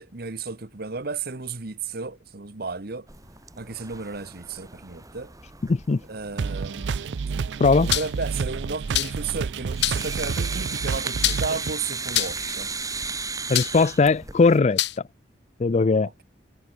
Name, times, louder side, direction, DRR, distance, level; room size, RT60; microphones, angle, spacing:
voice 1, 0.0-3.1 3.6-5.3 6.1-7.0 7.9-12.7, right 4 dB, 60° right, 1.2 m, -33 dB
sound 1, 3.1-14.6, right 4 dB, 20° right, 8.0 m, -36 dB
voice 2, 5.7-6.0 7.6-7.9 13.5-14.8 15.6-16.1, left 4 dB, 40° left, 0.4 m, -19 dB
sound 2, 6.4-11.7, right 5 dB, 80° right, 0.4 m, -29 dB
sound 3, 7.9-8.2 8.9-9.3 9.8-10.1 11.2-11.7 12.1-12.5 13.5-13.9 14.8-15.0, left 14 dB, 80° left, 2.2 m, -25 dB
head